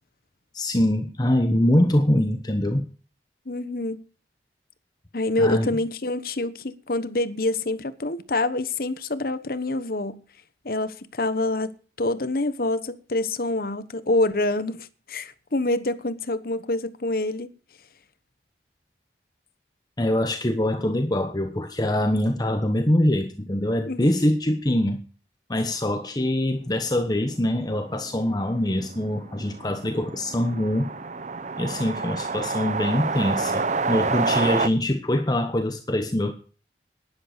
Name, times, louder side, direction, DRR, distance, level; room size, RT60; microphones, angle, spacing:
voice 1, 0.5-2.9 5.4-5.7 20.0-25.0 25.5-30.9 31.6-36.3, left 1 dB, 25° left, 1.0 m, -24 dB
voice 2, 3.5-4.0 5.1-10.2 10.6-11.7 12.0-17.5 23.8-24.0, left 2 dB, 55° left, 1.1 m, -26 dB
sound 1, 27.2-27.3 27.5-27.6 27.9-34.7, right 4 dB, 40° right, 0.7 m, -28 dB
11.5 x 10.5 x 6.6 m
head